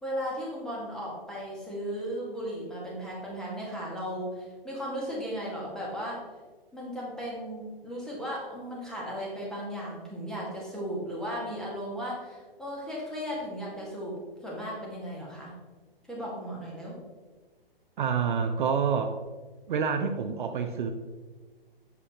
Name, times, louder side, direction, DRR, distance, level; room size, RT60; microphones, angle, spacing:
voice 1, 0.0-6.2 6.7-15.5 16.1-17.0, equal, ahead, -5 dB, 1.3 m, -36 dB
voice 2, 18.0-19.2 19.7-20.9, right 6 dB, 55° right, 6 dB, 0.5 m, -27 dB
6.8 x 4.9 x 2.8 m, 1.3 s
hypercardioid pair, 140°, 30 cm